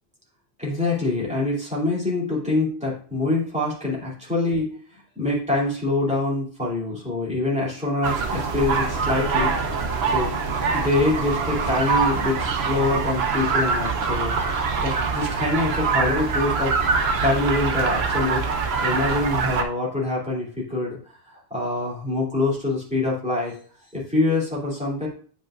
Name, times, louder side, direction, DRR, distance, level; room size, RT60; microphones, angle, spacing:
voice 1, 0.6-4.7 5.2-9.5 9.8-9.9 10.1-10.4 10.7-14.4 14.8-16.7 17.2-18.4 18.8-21.0 21.5-23.5 23.9-25.1, left 2 dB, 5° right, -5 dB, 2.7 m, -25 dB
sound 1, 8.0-19.6, right 4 dB, 75° right, 1.0 m, -24 dB
8.8 x 5.4 x 2.4 m, 0.43 s
omnidirectional pair, 1.1 m